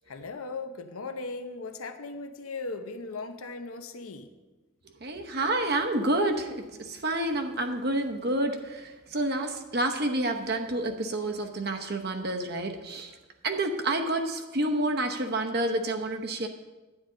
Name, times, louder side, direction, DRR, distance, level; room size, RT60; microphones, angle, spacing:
voice 1, 0.1-4.3, left 3 dB, 90° left, 8 dB, 0.8 m, -38 dB
voice 2, 5.0-13.1 13.4-16.5, right 1 dB, 50° right, 4 dB, 0.9 m, -29 dB
9.9 x 9.6 x 3.9 m, 1.2 s
head